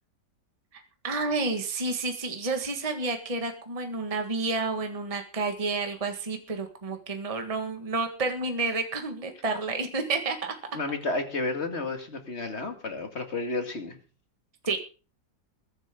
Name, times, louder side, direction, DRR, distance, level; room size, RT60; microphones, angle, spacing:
voice 1, 0.7-10.5 14.7-14.8, right 3 dB, 20° right, 5 dB, 1.7 m, -30 dB
voice 2, 10.7-14.0, left 2 dB, 35° left, 6 dB, 2.3 m, -31 dB
21.5 x 10.5 x 3.8 m, 0.36 s
omnidirectional pair, 1.9 m